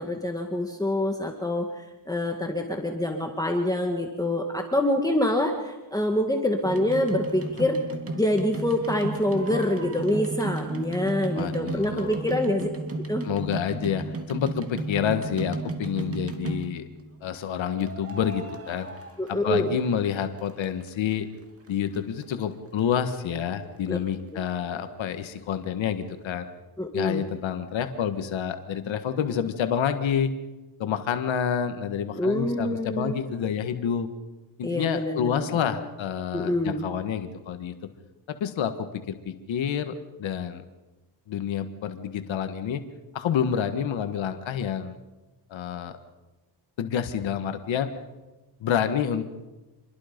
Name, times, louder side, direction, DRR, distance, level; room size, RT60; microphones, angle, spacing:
voice 1, 0.0-7.8 8.1-12.7 13.1-13.3 19.2-19.7 23.9-24.0 24.3-24.4 26.8-27.3 32.2-33.2 34.6-35.7 36.3-36.8, left 1 dB, 10° left, 2 dB, 2.0 m, -26 dB
sound 1, 6.6-17.0 17.8-19.9 20.2-21.1 21.7-21.8 21.9-22.0 22.2-22.3 22.8-22.9 23.1-23.2, right 3 dB, 30° right, 2.5 m, -34 dB
voice 2, 11.3-12.2 13.2-16.9 17.2-18.9 19.3-21.3 21.7-26.5 26.9-30.3 30.8-34.1 34.6-37.8 38.3-40.6 41.3-42.8 43.1-45.0 45.5-45.9 46.8-47.9 48.6-49.3, left 8 dB, 90° left, 8 dB, 1.6 m, -28 dB
27.5 x 22.0 x 5.3 m, 1.1 s
cardioid pair, 115°, 45 cm